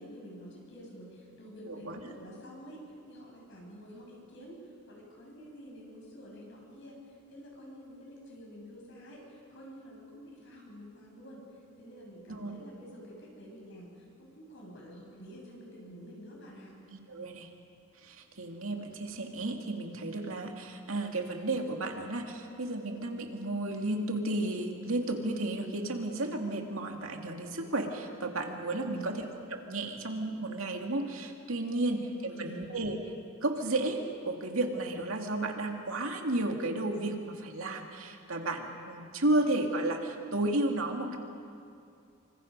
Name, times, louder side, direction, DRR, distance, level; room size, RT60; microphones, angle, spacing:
voice 1, 0.0-4.6 4.9-11.4 11.8-16.8 28.9-29.4 31.9-32.7, equal, 60° left, -2 dB, 7.3 m, -49 dB
voice 2, 1.7-2.0 12.3-12.6 16.9-17.5 18.0-29.2 29.5-33.0 33.4-41.2, right 2 dB, 75° right, 3 dB, 2.3 m, -33 dB
25.5 x 25.5 x 5.4 m, 2.5 s
head